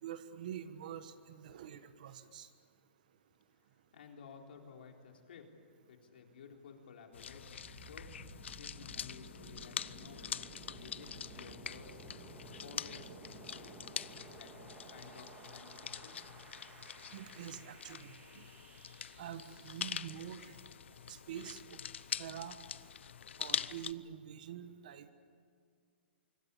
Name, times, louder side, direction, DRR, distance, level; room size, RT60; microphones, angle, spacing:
voice 1, 0.0-2.5 17.1-18.4 19.2-20.6 21.1-21.8 22.2-22.6 23.4-25.1, right 10 dB, 45° right, 11 dB, 1.4 m, -46 dB
voice 2, 3.9-5.5 5.9-8.1 8.6-10.3 10.8-11.1 11.3-12.0 12.6-13.8 14.3-14.5 14.9-16.2, left 6 dB, 60° left, 2 dB, 3.9 m, -54 dB
sound 1, 7.1-23.9, left 8 dB, 85° left, 0.7 m, -44 dB
sound 2, 7.2-21.0, right 3 dB, 15° right, 2.4 m, -55 dB
25.5 x 25.0 x 8.4 m, 2.2 s
hypercardioid pair, 175°, 6 cm